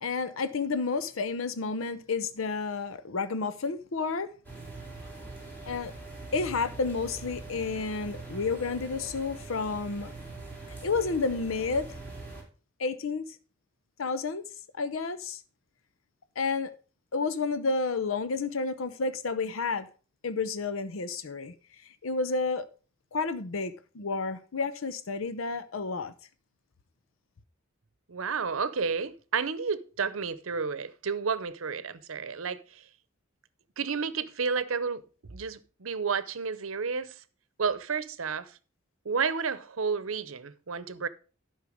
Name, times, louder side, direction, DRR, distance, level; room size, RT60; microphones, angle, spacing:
voice 1, 0.0-4.3 5.7-5.9 6.3-10.1 10.8-11.9 12.8-13.2 14.0-14.4 14.8-15.4 16.4-16.7 17.1-19.9 20.2-21.5 22.0-22.7 23.1-26.1, left 4 dB, 80° left, 0.7 m, -30 dB
sound 1, 4.4-12.4, right 3 dB, 10° left, 3.8 m, -43 dB
voice 2, 28.1-32.8 33.8-35.0 35.3-37.2 37.6-38.5 39.0-41.1, right 5 dB, 85° right, 0.8 m, -31 dB
11.5 x 5.7 x 5.0 m
head